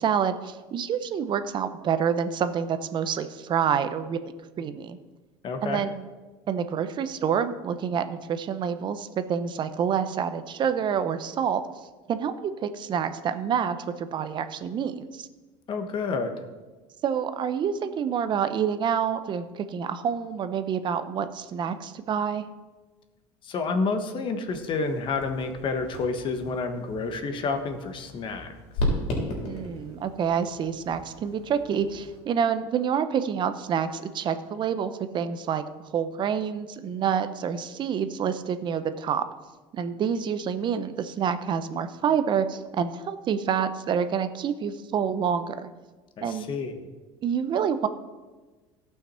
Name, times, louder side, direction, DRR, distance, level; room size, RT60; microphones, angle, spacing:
voice 1, 0.0-4.2 4.6-5.0 5.6-6.0 6.5-11.6 12.1-15.3 17.0-22.4 29.4-35.6 35.9-39.2 39.7-45.7 46.2-46.4 47.2-47.9, right 7 dB, 40° right, 10 dB, 0.8 m, -27 dB
voice 2, 5.4-5.8 15.7-16.3 23.4-28.5 46.2-46.9, left 4 dB, 40° left, 7 dB, 1.3 m, -29 dB
sound 1, 24.5-32.2, left 1 dB, 60° left, 3.7 m, -35 dB
16.5 x 5.8 x 4.4 m, 1.3 s
supercardioid pair, 125°, 13 cm